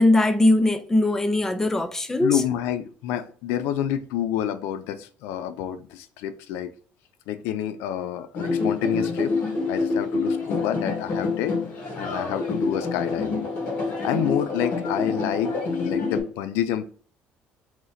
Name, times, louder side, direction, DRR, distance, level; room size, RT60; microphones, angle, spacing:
voice 1, 0.0-2.4, left 1 dB, 10° left, 0.5 m, -20 dB
voice 2, 2.2-6.7 7.3-9.3 9.7-11.6 11.9-13.5 14.0-15.6 15.8-16.8, left 11 dB, 85° left, 0.4 m, -28 dB
sound 1, 8.3-16.2, left 3 dB, 55° left, 1.6 m, -27 dB
3.0 x 2.7 x 3.9 m
cardioid pair, 105°, 4 cm